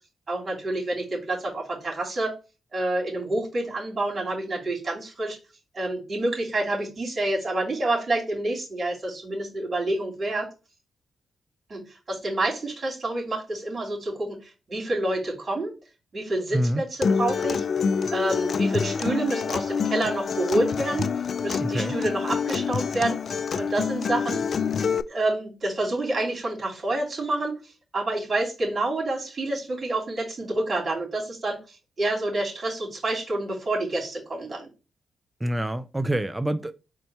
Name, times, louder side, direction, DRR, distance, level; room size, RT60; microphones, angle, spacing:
voice 1, 0.3-2.3 2.7-5.4 5.7-10.5 11.7-11.8 12.1-15.7 16.1-17.6 18.1-21.1 21.4-24.4 25.1-27.6 27.9-34.7, right 2 dB, 45° right, 3.0 m, -28 dB
Acoustic guitar, 17.0-25.0, left 6 dB, 60° left, 0.3 m, -26 dB
voice 2, 21.6-21.9 35.4-36.7, right 1 dB, 15° right, 0.4 m, -26 dB
4.3 x 2.8 x 4.3 m
supercardioid pair, 55°, 0 cm